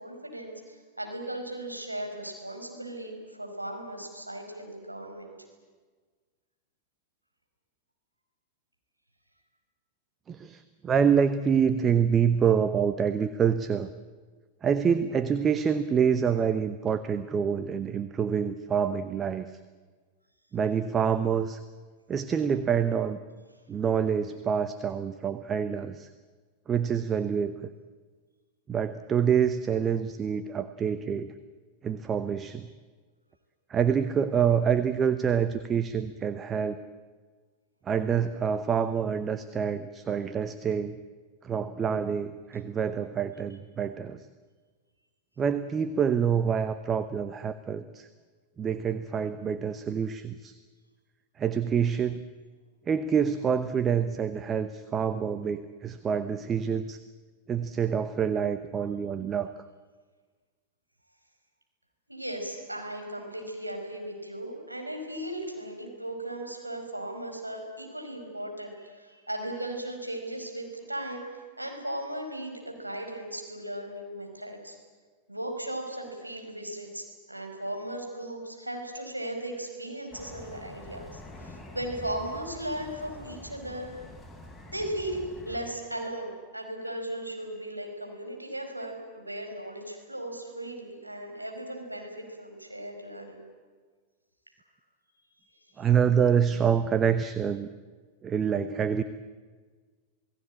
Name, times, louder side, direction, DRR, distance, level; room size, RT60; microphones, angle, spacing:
voice 1, 0.0-5.3 62.1-74.8 75.3-83.9 84.7-93.4 95.3-95.7, right 1 dB, 85° right, 2 dB, 5.1 m, -37 dB
voice 2, 10.3-13.9 14.6-19.6 20.5-21.6 22.1-23.2 23.7-26.1 26.7-27.5 28.7-31.3 31.8-32.7 33.7-36.8 37.9-41.0 41.4-44.3 45.4-48.1 48.6-50.6 51.4-52.2 52.9-57.0 57.5-59.5 95.8-97.7 98.2-99.0, right 7 dB, 25° right, 12 dB, 1.0 m, -26 dB
sound 1, 80.1-85.6, left 1 dB, 5° left, 6.0 m, -46 dB
28.5 x 18.0 x 8.8 m, 1.5 s
figure-of-eight pair, 90°, 0 cm